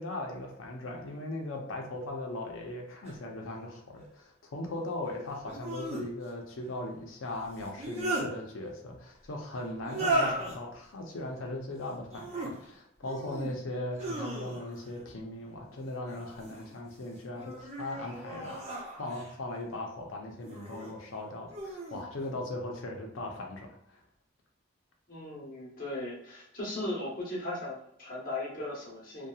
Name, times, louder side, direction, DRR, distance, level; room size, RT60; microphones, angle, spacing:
voice 1, 0.0-18.7 19.0-23.8, left 1 dB, 90° left, 1 dB, 0.6 m, -39 dB
sound 1, 3.0-3.1 5.4-6.0 7.6-8.3 9.8-10.6 12.0-12.5 13.0-13.5 13.9-14.8 16.1-16.7 17.3-19.3 20.4-20.9 21.5-22.0, right 1 dB, 35° right, 0.8 m, -35 dB
voice 2, 25.1-29.3, left 1 dB, 45° left, -3 dB, 0.9 m, -37 dB
2.7 x 2.2 x 2.3 m, 0.76 s
head